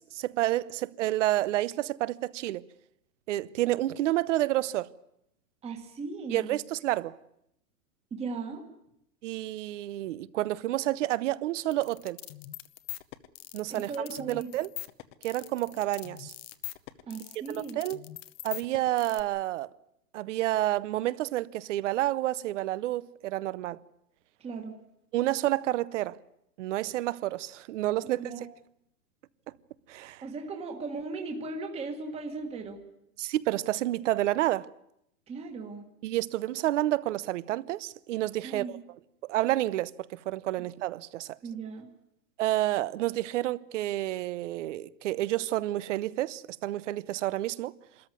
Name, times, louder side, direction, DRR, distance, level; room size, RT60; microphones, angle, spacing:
voice 1, 0.0-2.6 3.3-4.9 6.3-7.2 9.2-12.2 13.5-14.7 15.2-16.3 17.5-18.0 18.4-19.7 20.1-23.8 25.1-26.2 26.6-28.2 29.9-30.2 33.2-34.7 36.0-38.8 39.2-41.4 42.4-47.7, right 15 dB, 45° right, 0.8 m, -29 dB
voice 2, 5.6-6.5 8.1-8.7 13.7-14.5 17.1-17.8 24.4-24.7 28.0-28.4 30.2-32.8 35.3-35.9 38.4-38.8 41.4-41.9, right 4 dB, 10° right, 1.6 m, -37 dB
sound 1, 11.7-19.2, left 16 dB, 35° left, 0.9 m, -42 dB
26.0 x 14.0 x 9.6 m
hypercardioid pair, 160°, 49 cm